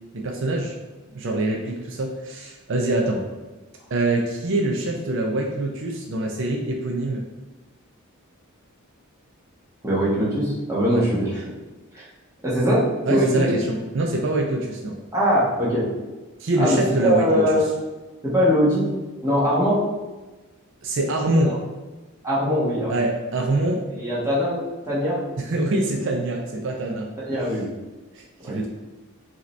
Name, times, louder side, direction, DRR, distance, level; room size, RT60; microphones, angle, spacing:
voice 1, 0.1-0.7 1.1-3.2 3.9-7.2 10.9-11.1 13.1-15.0 16.4-17.4 20.8-21.6 22.9-23.9 25.4-27.1 28.1-28.7, right 2 dB, 60° right, 1 dB, 0.5 m, -24 dB
voice 2, 9.8-11.4 11.9-12.1 12.4-12.8 13.1-13.5 15.1-15.9 16.6-17.7 18.2-18.9 19.2-19.8 21.4-21.5 22.2-23.0 23.9-25.2 27.2-27.7 28.4-28.6, equal, 15° right, -8 dB, 1.3 m, -21 dB
4.9 x 2.9 x 3.2 m, 1.2 s
head